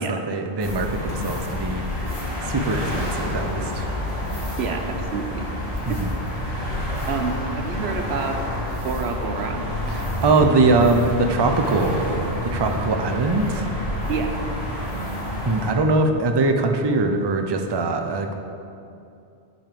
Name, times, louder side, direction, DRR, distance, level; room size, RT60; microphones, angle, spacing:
voice 1, 0.0-1.9 2.5-3.9 5.9-6.1 9.9-13.8 15.5-18.3, right 3 dB, 30° right, 5 dB, 0.5 m, -22 dB
sound 1, 0.6-15.7, left 1 dB, 35° left, 1.7 m, -28 dB
voice 2, 4.6-5.5 5.9-6.2 7.1-8.4 8.8-9.6 14.1-14.3, right 5 dB, 85° right, 5 dB, 1.1 m, -28 dB
8.9 x 5.4 x 6.8 m, 2.6 s
omnidirectional pair, 1.1 m